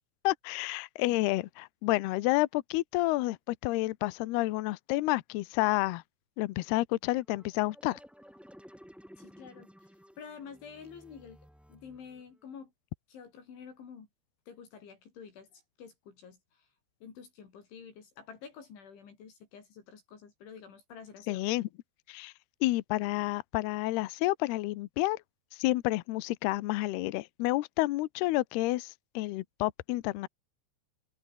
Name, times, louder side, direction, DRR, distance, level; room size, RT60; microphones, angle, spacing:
voice 1, 0.2-6.0 6.4-8.0 21.3-21.7 22.1-22.3 22.6-25.2 25.5-30.3, left 19 dB, 85° left, 2.3 m, -30 dB
sound 1, 7.1-12.5, equal, ahead, 4.8 m, -55 dB
voice 2, 9.2-9.9 10.2-11.4 11.7-12.7 13.1-14.1 14.5-16.7 17.0-21.5, left 6 dB, 70° left, 6.8 m, -49 dB
omnidirectional pair, 5.7 m